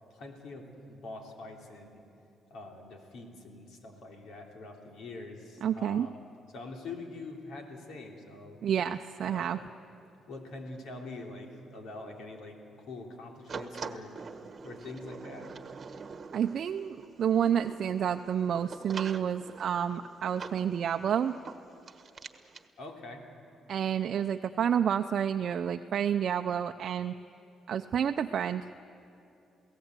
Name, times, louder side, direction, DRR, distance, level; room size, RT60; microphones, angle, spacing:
voice 1, 0.0-2.0 2.5-6.2 6.5-8.6 9.2-9.7 10.3-14.2 14.6-15.5 22.8-23.3, left 2 dB, 75° left, 2 dB, 3.3 m, -44 dB
voice 2, 5.6-6.1 8.6-9.6 16.3-21.3 23.7-27.1 27.7-28.6, right 8 dB, 60° right, 6 dB, 0.5 m, -29 dB
sound 1, 13.5-22.7, right 5 dB, 40° right, 1.3 m, -45 dB
28.5 x 17.5 x 8.2 m, 2.8 s
cardioid pair, 90°, 0 cm